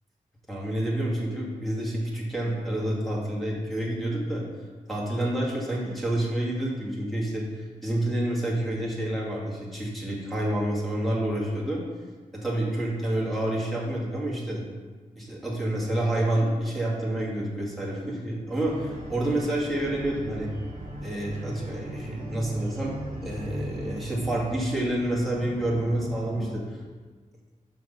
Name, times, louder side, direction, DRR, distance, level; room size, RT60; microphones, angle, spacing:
voice 1, 0.5-4.5 4.9-11.8 12.3-14.6 15.2-20.5 21.0-23.0 23.2-26.8, right 1 dB, ahead, -5 dB, 2.3 m, -28 dB
sound 1, 18.7-26.6, right 1 dB, 45° right, 2.1 m, -38 dB
6.4 x 5.9 x 5.7 m, 1.4 s
wide cardioid pair, 90°, 14 cm